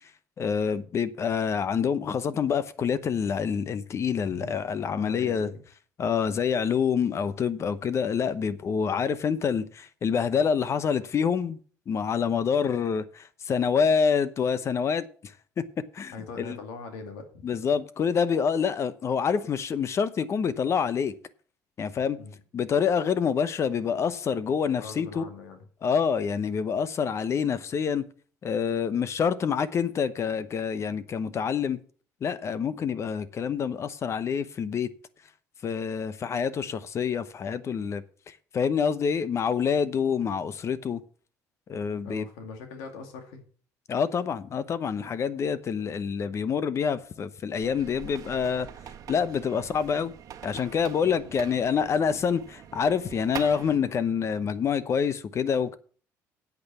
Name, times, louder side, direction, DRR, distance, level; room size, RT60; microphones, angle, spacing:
voice 1, 0.4-5.5 6.0-11.6 11.9-15.7 15.9-16.6 17.4-21.1 21.8-22.2 22.5-25.2 25.8-28.1 28.4-31.8 32.2-34.9 35.6-41.0 41.7-42.2 43.9-48.7 49.1-50.1 50.4-55.8, left 6 dB, 45° left, 0.9 m, -27 dB
voice 2, 4.3-4.6 4.9-5.6 16.1-17.4 22.0-22.3 24.8-25.6 42.0-43.5 51.0-51.4, left 4 dB, 90° left, 2.2 m, -41 dB
sound 1, 47.6-53.8, right 9 dB, 60° right, 1.3 m, -43 dB
8.5 x 8.5 x 6.9 m
supercardioid pair, 95°, 7 cm